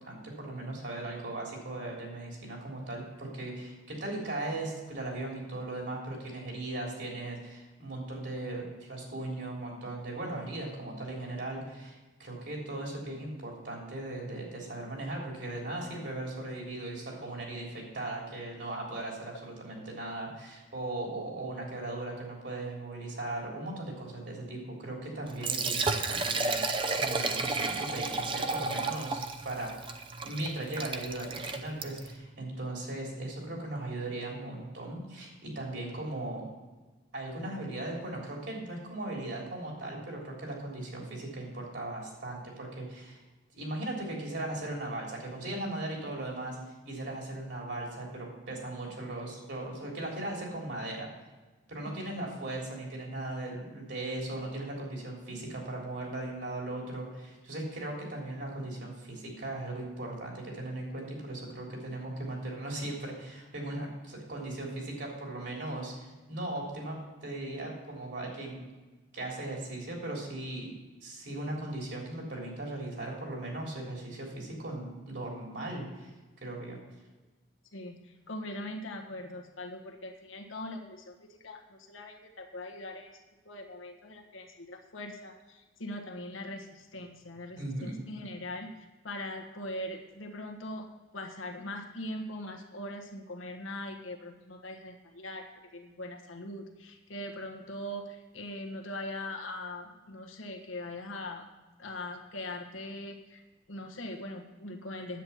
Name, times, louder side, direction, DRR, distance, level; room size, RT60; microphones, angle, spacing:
voice 1, 0.0-36.5 37.1-43.2 43.5-46.6 46.8-51.1 51.7-68.6 69.1-70.8 71.0-76.1 76.4-76.8 87.6-88.0, right 2 dB, 60° right, -1 dB, 3.6 m, -38 dB
Liquid, 25.3-32.2, right 3 dB, 25° right, 0.6 m, -32 dB
voice 2, 77.7-83.2 83.4-88.7 89.0-90.9 91.1-101.4 101.8-103.4 103.7-105.2, left 1 dB, 85° left, 3 dB, 1.5 m, -41 dB
10.0 x 8.6 x 5.7 m, 1.2 s
head